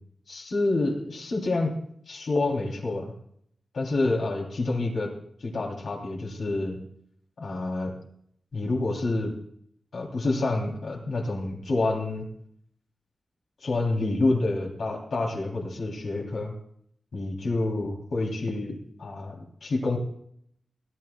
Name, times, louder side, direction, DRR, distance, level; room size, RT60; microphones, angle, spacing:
voice 1, 0.3-1.7 2.1-3.1 3.7-5.1 5.4-6.8 7.4-7.9 8.5-9.3 9.9-12.3 13.6-16.5 17.1-19.4 19.6-20.0, left 2 dB, 80° left, 0 dB, 3.2 m, -28 dB
21.0 x 12.0 x 2.3 m, 0.68 s
wide cardioid pair, 110°, 0 cm